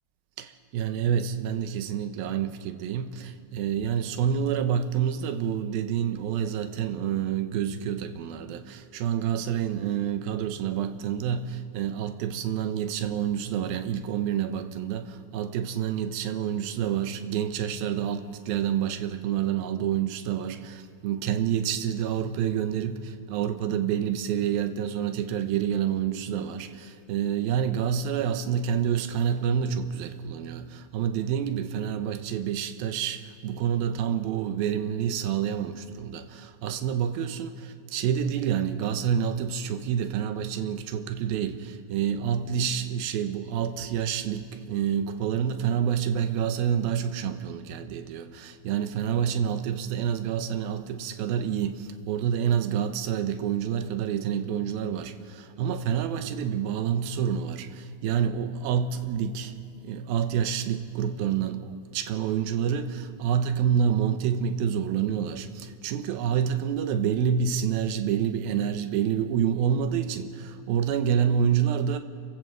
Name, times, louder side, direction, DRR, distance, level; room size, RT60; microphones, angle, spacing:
voice 1, 0.4-59.6 59.8-72.0, right 8 dB, 80° right, 2.7 m, -28 dB
26.0 x 14.5 x 7.8 m
omnidirectional pair, 4.3 m